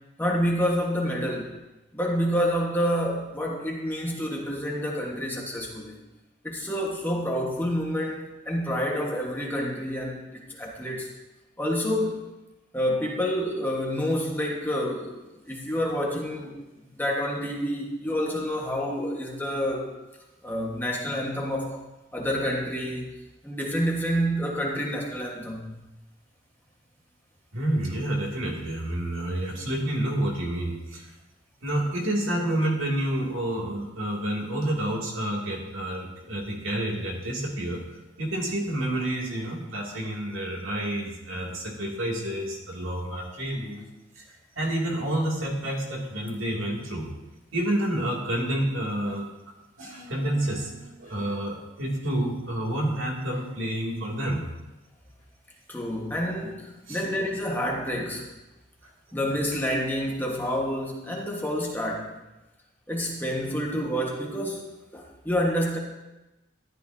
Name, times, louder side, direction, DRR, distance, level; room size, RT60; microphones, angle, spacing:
voice 1, 0.2-1.5 1.9-6.0 6.4-11.1 11.6-12.3 12.7-19.9 20.4-21.8 22.1-23.1 23.4-25.8 55.7-58.3 59.1-62.1 62.9-65.8, equal, 10° left, -2 dB, 1.4 m, -28 dB
voice 2, 27.5-31.1 31.6-37.8 38.2-43.9 44.2-47.1 47.5-49.3 49.8-54.4 56.9-57.2, right 1 dB, 80° right, -2 dB, 2.5 m, -29 dB
13.5 x 11.5 x 2.8 m, 1.0 s
head